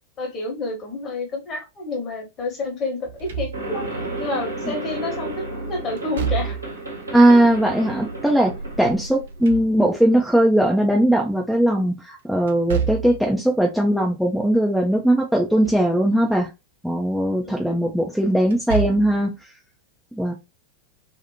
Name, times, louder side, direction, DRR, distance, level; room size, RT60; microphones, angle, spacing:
voice 1, 0.2-3.8 4.2-6.6 17.4-18.0, left 2 dB, 30° left, 1 dB, 1.1 m, -29 dB
Slam / Thump thud, 3.0-4.0 6.0-6.9 9.1-10.2 12.5-13.3 15.3-15.9 16.3-16.4 18.4-19.2, right 7 dB, 60° right, 0.6 m, -29 dB
sound 1, 3.5-9.5, right 2 dB, 80° right, 1.0 m, -32 dB
voice 2, 7.1-8.5 8.8-16.5 16.8-19.3 20.1-20.3, right 1 dB, ahead, -1 dB, 0.5 m, -19 dB
2.6 x 2.4 x 2.7 m, 0.24 s
figure-of-eight pair, 90°, 0 cm